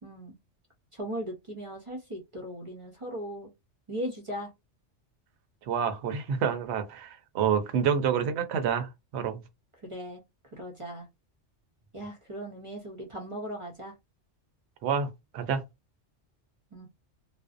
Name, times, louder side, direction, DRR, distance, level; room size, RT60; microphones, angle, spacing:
voice 1, 0.0-0.4 0.9-3.5 3.9-4.5 9.8-10.2 10.5-11.1 11.9-13.9 16.7-16.9, equal, 35° right, 0.5 m, -38 dB
voice 2, 5.7-9.4 14.8-15.6, right 7 dB, 70° right, 0.8 m, -28 dB
2.5 x 2.0 x 2.4 m
omnidirectional pair, 1.3 m